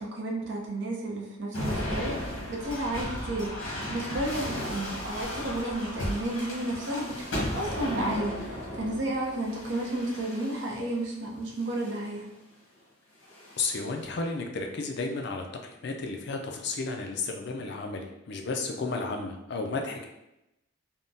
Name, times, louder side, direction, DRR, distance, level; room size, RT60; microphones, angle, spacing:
voice 1, 0.0-2.2 2.5-12.3, right 1 dB, 60° right, -1 dB, 0.6 m, -32 dB
sound 1, 1.5-10.9 11.6-12.1 13.2-13.9, equal, 75° left, 1.0 m, -35 dB
voice 2, 13.6-20.0, left 3 dB, 55° left, 3 dB, 0.4 m, -33 dB
3.5 x 2.0 x 2.6 m, 0.90 s
head